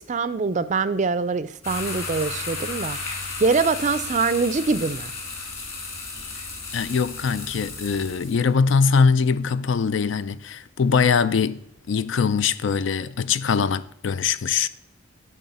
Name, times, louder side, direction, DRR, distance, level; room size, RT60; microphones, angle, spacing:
voice 1, 0.0-3.1 3.4-5.1, right 4 dB, 35° right, 0.4 m, -24 dB
sound 1, 1.6-8.4, left 3 dB, 30° left, 2.3 m, -34 dB
voice 2, 6.7-11.6 11.9-14.7, left 5 dB, 60° left, 0.4 m, -22 dB
10.0 x 3.7 x 6.9 m
head